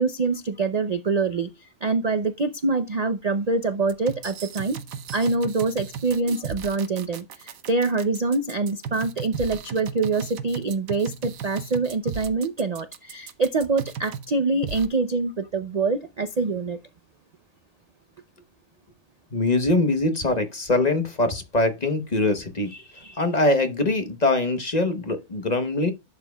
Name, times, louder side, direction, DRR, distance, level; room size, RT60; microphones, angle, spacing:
voice 1, 0.0-1.5 1.8-4.8 5.1-16.8, right 3 dB, 45° right, 0.5 m, -25 dB
sound 1, 3.9-14.3 14.6-14.9, right 7 dB, 90° right, 1.3 m, -35 dB
voice 2, 19.3-25.9, left 2 dB, 35° left, 1.0 m, -23 dB
11.5 x 7.3 x 2.3 m
omnidirectional pair, 1.4 m